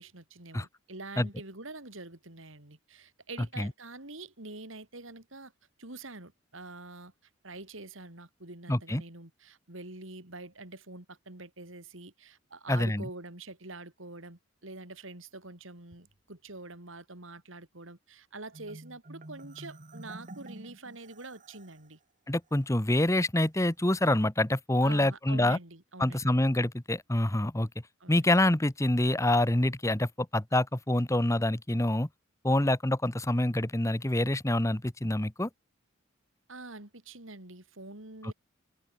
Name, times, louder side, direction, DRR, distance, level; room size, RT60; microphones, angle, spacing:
voice 1, 0.0-5.5 5.8-7.1 7.4-22.0 24.8-26.4 28.0-28.3 36.5-38.3, right 2 dB, 70° right, 4.0 m, -45 dB
voice 2, 8.7-9.0 12.7-13.0 22.3-25.6 26.0-27.7 28.1-32.1 32.4-35.5, left 1 dB, 15° left, 1.0 m, -26 dB
Marimba xylophone, 18.5-21.9, right 1 dB, 40° right, 1.5 m, -48 dB
head